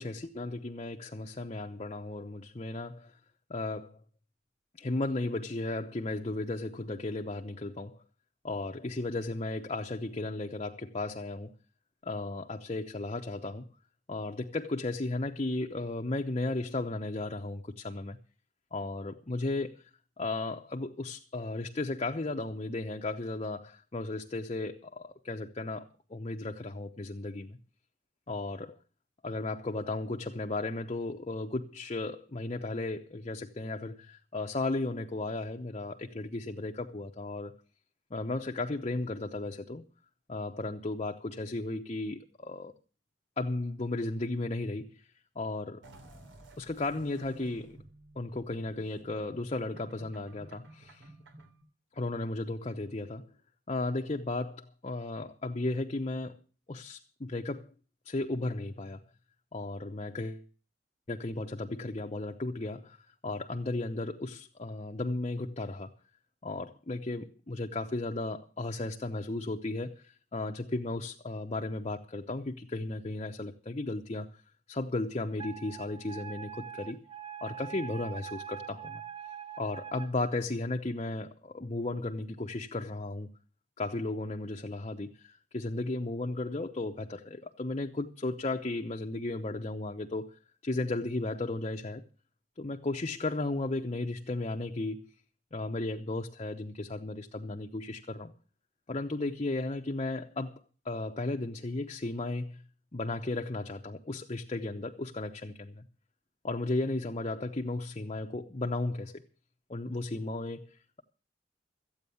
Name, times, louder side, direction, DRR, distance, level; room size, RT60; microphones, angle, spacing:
voice 1, 0.0-3.2 3.5-4.0 4.8-8.0 8.4-11.5 12.0-13.7 14.1-18.2 18.7-19.8 20.2-25.8 26.1-27.6 28.3-28.8 29.2-37.5 38.1-39.8 40.3-42.7 43.4-45.0 45.4-45.8 46.6-47.8 48.2-51.1 51.9-53.3 53.7-56.4 56.7-57.7 58.1-59.0 59.5-60.4 61.1-65.9 66.4-74.4 74.7-77.0 77.4-79.0 79.6-83.3 83.8-92.0 92.6-95.1 95.5-98.3 98.9-102.6 102.9-105.8 106.4-109.2 109.7-111.0, left 2 dB, 35° left, 0.8 m, -35 dB
sound 1, 45.8-51.6, right 1 dB, 85° right, 3.0 m, -54 dB
Wind instrument woodwind instrument, 75.4-80.1, right 9 dB, 30° right, 0.6 m, -43 dB
14.0 x 8.9 x 7.0 m
head